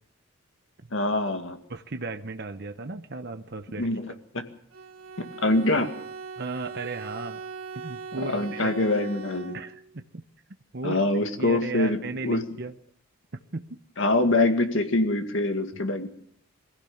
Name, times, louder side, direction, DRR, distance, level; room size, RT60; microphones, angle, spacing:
voice 1, 0.9-1.6 3.8-4.4 5.2-5.9 8.2-9.6 10.8-12.4 14.0-16.1, left 2 dB, 60° left, 6 dB, 2.1 m, -25 dB
voice 2, 1.7-3.9 6.4-7.4 7.7-8.7 9.5-10.2 10.7-11.0 11.4-12.7 13.5-13.8, right 3 dB, 50° right, 8 dB, 0.9 m, -35 dB
Bowed string instrument, 4.7-10.0, right 5 dB, 80° right, 1.5 m, -40 dB
23.0 x 16.0 x 7.2 m, 0.67 s
head